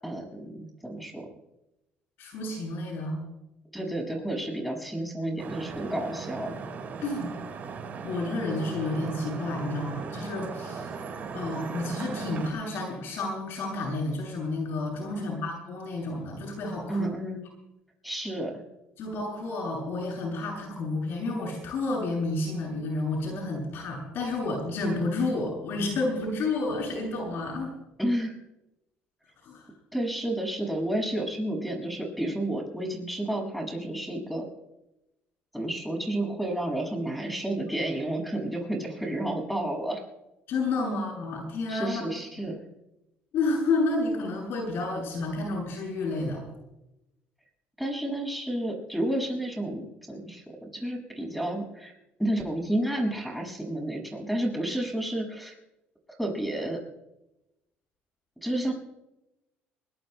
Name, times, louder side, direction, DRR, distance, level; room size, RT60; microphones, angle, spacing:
voice 1, 0.0-1.3 3.7-6.5 15.2-15.5 16.9-17.4 18.0-18.6 28.0-28.4 29.9-34.5 35.5-40.0 41.7-42.6 47.8-51.9 52.2-55.6 56.2-56.8 58.4-58.7, right 1 dB, ahead, 0 dB, 6.1 m, -31 dB
voice 2, 2.2-3.2 7.0-7.3 8.0-10.9 11.3-17.1 19.0-27.7 29.4-29.6 40.5-42.0 42.3-42.5 43.3-46.4, left 2 dB, 65° left, 0 dB, 7.5 m, -30 dB
Vehicle horn car horn honking / Traffic noise roadway noise, 5.4-12.5, right 5 dB, 45° right, 4.6 m, -38 dB
23.5 x 21.5 x 2.2 m, 0.92 s
cardioid pair, 100°, 4 cm